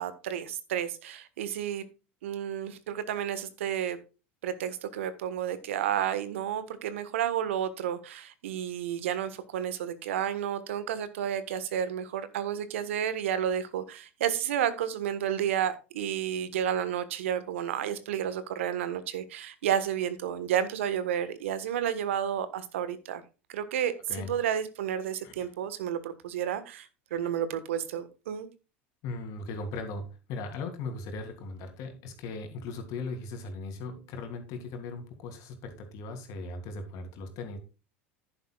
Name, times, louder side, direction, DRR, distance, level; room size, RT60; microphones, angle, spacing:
voice 1, 0.0-1.8 2.2-4.0 4.4-23.2 23.5-23.9 24.3-28.5, right 9 dB, 75° right, 13 dB, 1.4 m, -31 dB
voice 2, 29.0-37.6, left 3 dB, 55° left, 6 dB, 3.1 m, -38 dB
10.5 x 10.0 x 2.4 m, 0.31 s
hypercardioid pair, 80°, 7 cm